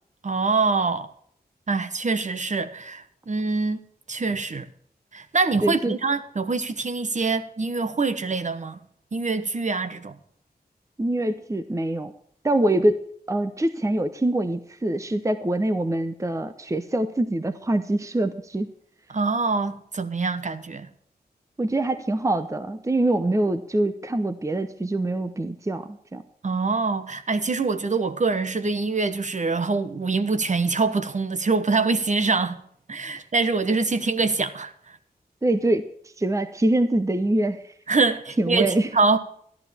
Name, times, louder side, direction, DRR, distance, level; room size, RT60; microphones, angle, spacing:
voice 1, 0.2-1.1 1.7-3.8 4.1-4.7 5.1-8.8 9.1-10.2 19.1-20.9 26.4-32.6 32.9-34.7 37.9-39.2, right 4 dB, 45° right, 1.1 m, -24 dB
voice 2, 5.6-6.0 11.0-12.1 12.4-18.7 21.6-26.2 35.4-35.9 36.2-37.7 38.4-38.9, right 1 dB, 20° right, 0.7 m, -24 dB
13.5 x 11.0 x 4.3 m
wide cardioid pair, 105°, 17 cm